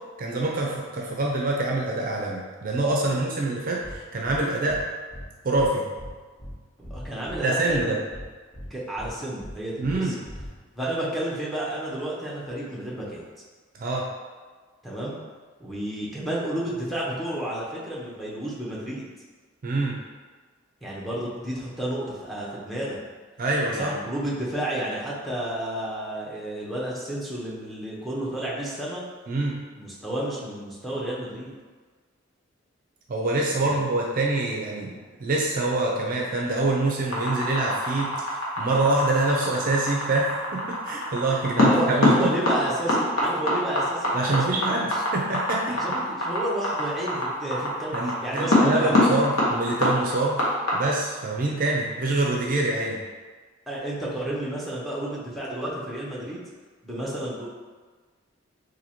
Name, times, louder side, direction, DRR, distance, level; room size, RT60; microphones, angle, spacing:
voice 1, 0.2-4.8 5.4-5.8 7.4-8.0 9.8-10.1 13.8-14.0 19.6-19.9 23.4-24.0 29.3-29.6 33.1-38.1 38.6-42.3 44.1-44.9 45.1-45.8 47.9-50.4 50.7-53.0, right 2 dB, 45° right, -2 dB, 0.4 m, -25 dB
sound 1, 3.8-4.0 4.2-4.4 4.7-4.8 5.1-5.2 5.5-5.7 6.0-6.1 6.4-6.5 6.8-7.4 7.7-7.8 8.1-8.2 8.5-8.7 9.0-9.1 9.4-9.5 9.8-10.0 10.2-10.5, equal, 30° left, 1.2 m, -39 dB
voice 2, 6.8-8.0 8.7-10.2 10.7-13.2 14.8-15.2 15.6-19.0 20.8-23.0 23.7-29.0 29.8-31.5 33.6-33.8 41.3-45.0 45.7-49.1 53.7-56.4 56.8-57.4, right 1 dB, ahead, -6 dB, 0.7 m, -31 dB
sound 2, 37.1-50.7, left 1 dB, 85° left, 0.9 m, -23 dB
2.8 x 2.7 x 4.2 m, 1.4 s
head